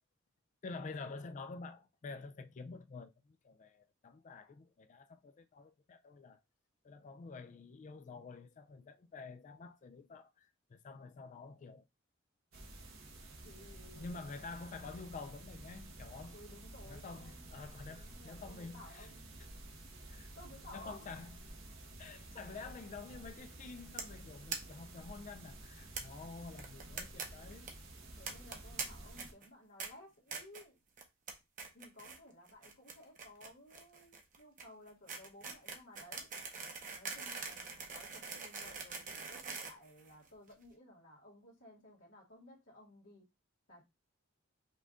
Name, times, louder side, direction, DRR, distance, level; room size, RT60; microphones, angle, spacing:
voice 1, 0.6-6.4 6.8-11.9 12.5-12.6 14.0-16.4 16.8-19.1 20.1-20.3 20.7-21.4 22.0-27.7, left 4 dB, 35° left, 0.3 m, -49 dB
sound 1, 12.5-29.3, right 1 dB, 75° right, 1.2 m, -52 dB
voice 2, 13.4-14.2 16.3-17.6 17.9-19.3 20.3-21.0 28.2-30.8 31.7-36.3 36.9-43.3 43.7-43.8, left 1 dB, 65° left, 1.7 m, -57 dB
sound 2, 24.0-24.2 24.5-24.6 24.8-24.9 25.2-25.3 26.0-26.1 26.6-27.3 27.5-27.7 28.3-28.8 29.2-29.5 29.8-29.9 30.3-30.6 31.0-31.3 31.6-32.2 32.5-40.5, right 5 dB, 40° right, 0.9 m, -43 dB
5.5 x 2.5 x 3.7 m
head